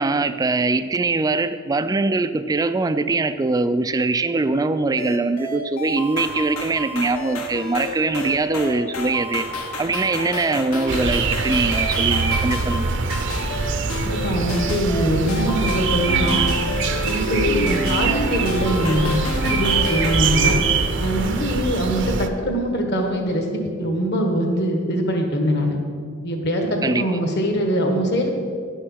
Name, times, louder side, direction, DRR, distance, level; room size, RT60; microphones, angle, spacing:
voice 1, 0.0-9.4 9.8-12.9 26.8-27.1, right 3 dB, 15° right, 11 dB, 0.3 m, -22 dB
sound 1, 5.0-20.6, left 1 dB, 75° left, 1.4 m, -29 dB
sound 2, 10.9-22.3, right 4 dB, 55° right, 0.7 m, -23 dB
voice 2, 14.0-16.5 17.0-20.6 21.0-25.8 26.2-28.3, equal, 50° left, 3 dB, 1.5 m, -23 dB
11.0 x 6.4 x 6.3 m, 2.2 s
head